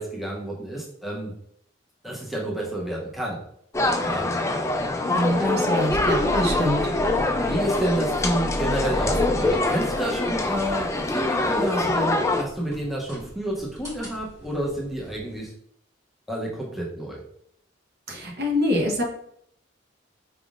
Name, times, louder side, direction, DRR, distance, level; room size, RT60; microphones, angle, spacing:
voice 1, 0.0-1.3 2.0-3.4 4.0-4.3 6.2-6.7 7.4-15.5 16.3-17.2, right 1 dB, ahead, -4 dB, 0.7 m, -30 dB
sound 1, 3.7-12.4, left 2 dB, 15° left, 0.3 m, -24 dB
voice 2, 5.1-6.8 18.1-19.0, equal, 50° right, 0 dB, 0.9 m, -25 dB
sound 2, 5.9-15.5, equal, 15° right, 1.6 m, -36 dB
4.9 x 3.5 x 2.4 m, 0.69 s
head